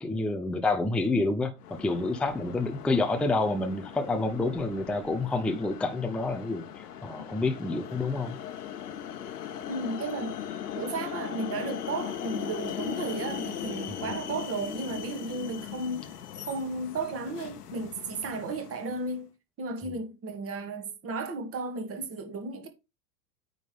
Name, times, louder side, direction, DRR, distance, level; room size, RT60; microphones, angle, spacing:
voice 1, 0.0-8.4 14.0-14.1 19.8-19.9, left 2 dB, ahead, 0.6 m, -28 dB
sound 1, 1.6-19.1, left 9 dB, 75° left, 1.3 m, -39 dB
voice 2, 9.7-10.4 10.7-16.2 16.5-19.3 19.6-22.7, right 3 dB, 30° right, 2.3 m, -34 dB
9.1 x 3.8 x 5.2 m
hypercardioid pair, 95°, 46 cm